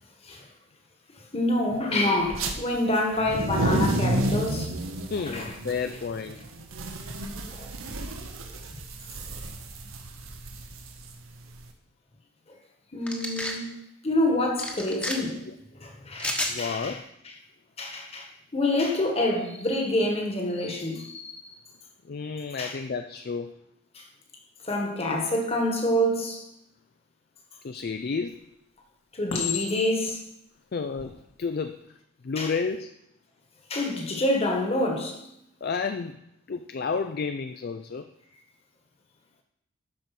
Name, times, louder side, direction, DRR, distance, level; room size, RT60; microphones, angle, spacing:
voice 1, 1.3-4.7 5.2-5.5 7.5-7.7 12.9-13.7 14.0-15.4 15.8-17.0 17.8-21.5 22.6-22.7 23.9-24.0 24.6-26.4 29.1-30.2 32.4-32.5 33.7-35.2, left 1 dB, 30° left, 1.5 m, -27 dB
sound 1, 2.3-2.5 3.1-11.6, right 1 dB, 80° right, 1.1 m, -31 dB
voice 2, 5.1-6.4 13.3-13.8 15.5-15.6 16.5-17.0 19.0-19.1 22.1-23.5 27.6-28.4 30.7-31.8 32.2-32.9 35.6-36.2 36.5-38.1, left 5 dB, 45° left, 0.4 m, -31 dB
sound 2, 13.1-13.6 14.6-15.2 16.2-16.5, left 1 dB, 5° left, 1.1 m, -30 dB
Chink clink, 27.8-28.3 29.3-30.1 30.8-31.1, left 6 dB, 90° left, 2.4 m, -33 dB
12.0 x 4.7 x 6.0 m
head